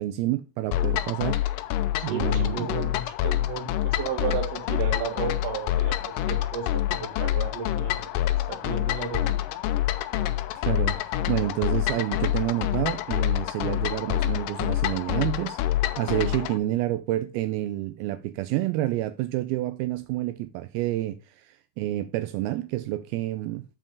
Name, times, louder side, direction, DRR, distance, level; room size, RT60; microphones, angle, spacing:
voice 1, 0.0-1.4 2.0-2.7 10.7-11.0 11.3-15.6 16.0-23.6, right 15 dB, 85° right, 2.4 m, -29 dB
sound 1, 0.7-16.6, left 13 dB, 80° left, 2.0 m, -27 dB
voice 2, 2.0-8.0 8.5-9.4, right 6 dB, 55° right, 2.1 m, -33 dB
7.6 x 5.3 x 5.1 m
omnidirectional pair, 4.5 m